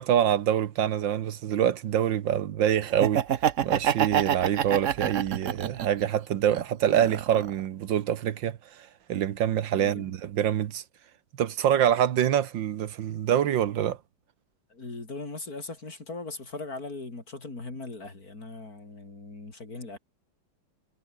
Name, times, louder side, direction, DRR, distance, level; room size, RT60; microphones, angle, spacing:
voice 1, 0.0-3.2 3.6-10.8 11.4-14.0, right 10 dB, 70° right, 1.7 m, -25 dB
Laughter, 2.9-6.0 6.5-7.6, right 9 dB, 55° right, 0.9 m, -26 dB
voice 2, 9.7-10.1 14.7-20.0, left 3 dB, 45° left, 4.8 m, -39 dB
omnidirectional pair, 2.1 m